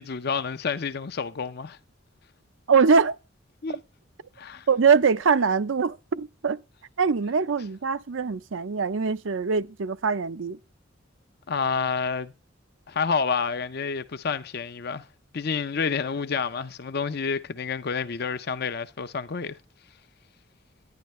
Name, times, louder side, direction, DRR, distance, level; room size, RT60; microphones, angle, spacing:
voice 1, 0.0-1.8 3.6-3.8 4.4-4.7 11.5-12.3 12.9-15.0 15.3-19.6, left 5 dB, 55° left, 0.6 m, -29 dB
voice 2, 2.7-3.2 4.7-6.6 7.0-10.6, right 5 dB, 80° right, 0.6 m, -22 dB
10.5 x 10.5 x 3.1 m
head